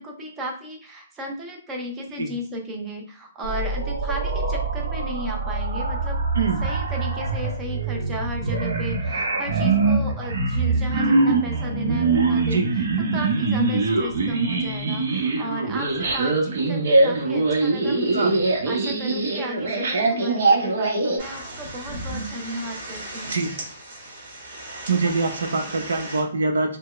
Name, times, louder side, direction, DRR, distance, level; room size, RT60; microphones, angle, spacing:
voice 1, 0.0-23.4, equal, 10° right, 2 dB, 0.5 m, -34 dB
sound 1, 3.4-21.2, right 3 dB, 60° right, 0.9 m, -23 dB
sound 2, 21.2-26.2, right 1 dB, 45° right, 1.8 m, -36 dB
voice 2, 24.9-26.8, right 3 dB, 85° right, 5 dB, 0.7 m, -24 dB
4.4 x 2.1 x 3.1 m, 0.43 s
hypercardioid pair, 175°, 0 cm